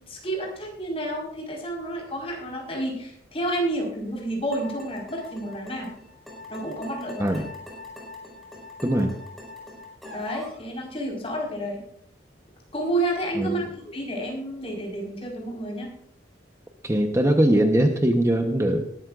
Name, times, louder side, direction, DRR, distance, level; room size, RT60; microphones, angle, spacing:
voice 1, 0.0-5.9 6.5-7.4 10.1-11.8 12.7-15.9, right 1 dB, 35° left, -2 dB, 4.6 m, -30 dB
sound 1, 4.5-10.6, left 2 dB, ahead, 5.0 m, -42 dB
voice 2, 8.8-9.2 13.4-13.7 16.8-18.9, right 1 dB, 15° right, 4 dB, 0.9 m, -21 dB
20.5 x 12.5 x 2.5 m, 0.71 s
head